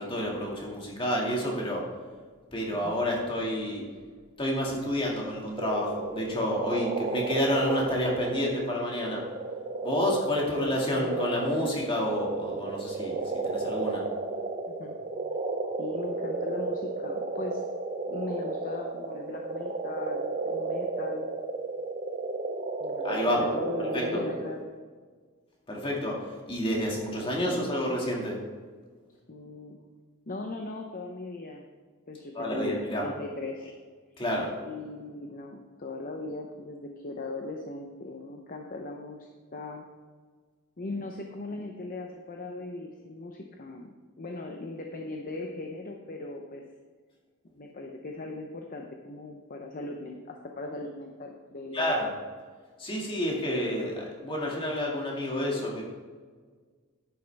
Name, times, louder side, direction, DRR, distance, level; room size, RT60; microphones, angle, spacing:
voice 1, 0.0-1.8 2.5-3.8 4.4-9.2 9.8-13.2 13.4-14.0 23.0-23.4 23.9-24.2 25.7-26.2 26.5-28.4 32.3-33.1 33.6-33.7 34.2-34.5 51.7-52.1 52.8-55.8, left 1 dB, 25° left, -2 dB, 2.0 m, -29 dB
sound 1, 5.6-24.6, right 3 dB, 35° right, 0.7 m, -33 dB
voice 2, 15.8-17.6 18.1-21.4 22.8-24.6 27.3-27.7 29.3-29.9 30.3-31.7 32.1-33.7 34.6-39.9 40.8-46.6 47.5-51.9, left 2 dB, 40° left, 2 dB, 0.7 m, -39 dB
10.0 x 8.7 x 3.4 m, 1.5 s
head